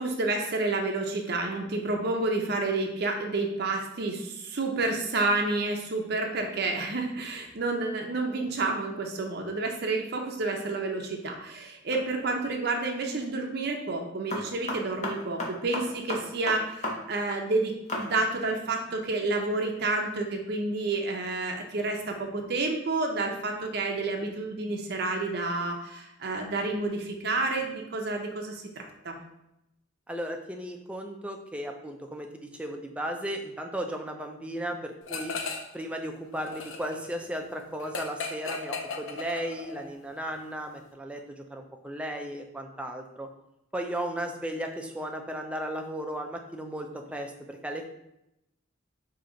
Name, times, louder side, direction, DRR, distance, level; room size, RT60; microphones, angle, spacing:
voice 1, 0.0-29.2, right 3 dB, 55° right, 2 dB, 0.6 m, -30 dB
sound 1, 11.9-12.2 14.3-17.0 17.2-17.3 17.9-18.1, left 1 dB, 35° left, 0.8 m, -33 dB
voice 2, 30.1-35.4 35.7-43.3 43.7-47.9, right 1 dB, 5° right, 3 dB, 0.4 m, -35 dB
sound 2, 35.1-35.8 36.1-39.9, left 4 dB, 80° left, 0.6 m, -36 dB
4.9 x 2.8 x 3.9 m, 0.86 s
head